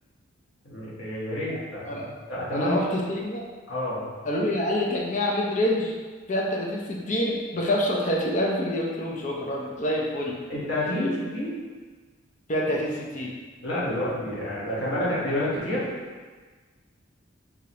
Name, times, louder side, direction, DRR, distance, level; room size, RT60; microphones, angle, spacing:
voice 1, 0.6-2.0 2.3-2.8 3.7-4.0 10.5-11.6 13.6-15.9, left 1 dB, 70° left, -8 dB, 1.3 m, -29 dB
voice 2, 2.5-3.4 4.3-5.9 6.3-10.4 11.0-11.1 12.5-13.3, left 1 dB, 40° left, -3 dB, 0.6 m, -26 dB
4.8 x 2.9 x 2.9 m, 1.4 s
head